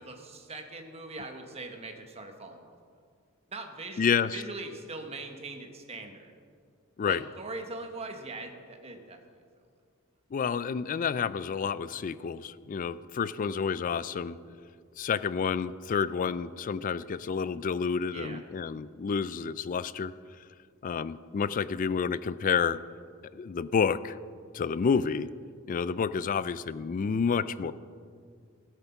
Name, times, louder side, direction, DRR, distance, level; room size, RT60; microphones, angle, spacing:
voice 1, 0.0-2.7 3.5-6.3 7.1-9.2 18.1-18.4, right 3 dB, 30° right, 4 dB, 1.2 m, -41 dB
voice 2, 4.0-4.4 7.0-7.2 10.3-14.4 15.0-20.1 20.8-22.8 23.3-24.2 24.5-25.3 25.7-27.7, left 6 dB, 40° left, 16 dB, 0.3 m, -29 dB
15.0 x 8.1 x 5.8 m, 2.1 s
head